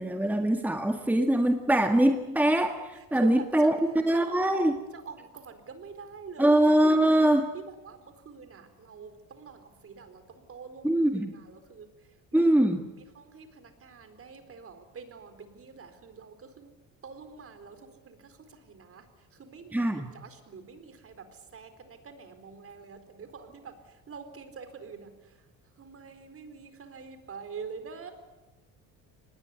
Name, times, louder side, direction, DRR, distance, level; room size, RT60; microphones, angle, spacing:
voice 1, 0.0-3.8 4.0-4.7 6.4-7.5 10.8-11.3 12.3-12.8 19.7-20.1, right 1 dB, 5° right, 5 dB, 1.8 m, -23 dB
voice 2, 2.9-3.8 4.1-4.6 4.9-6.5 7.5-12.7 13.0-16.7 17.0-25.5 25.8-28.1, right 5 dB, 40° right, 9 dB, 4.3 m, -46 dB
24.5 x 20.0 x 9.6 m, 1.1 s
cardioid pair, 105°, 33 cm